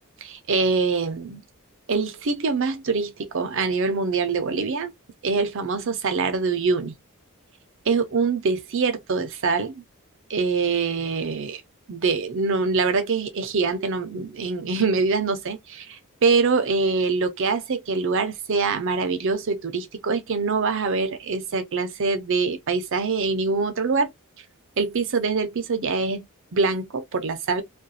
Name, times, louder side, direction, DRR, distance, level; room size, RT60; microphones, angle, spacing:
voice 1, 0.2-1.4 1.9-4.9 5.2-6.9 7.9-9.8 10.3-11.6 11.9-24.1 24.8-26.3 26.5-27.6, right 4 dB, 60° right, 0.6 m, -24 dB
2.4 x 2.2 x 2.6 m
head